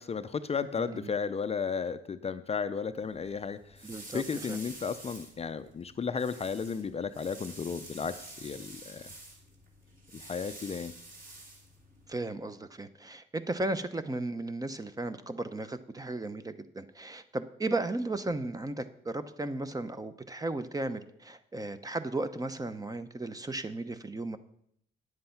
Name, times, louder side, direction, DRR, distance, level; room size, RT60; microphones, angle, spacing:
voice 1, 0.0-9.1 10.1-10.9, left 6 dB, 30° left, 11 dB, 0.5 m, -34 dB
sound 1, 3.0-12.2, right 2 dB, 45° right, 3.3 m, -49 dB
voice 2, 3.8-4.2 4.5-4.6 12.1-24.4, right 2 dB, 20° right, 11 dB, 0.7 m, -35 dB
9.5 x 7.7 x 5.8 m, 0.71 s
cardioid pair, 90°, 20 cm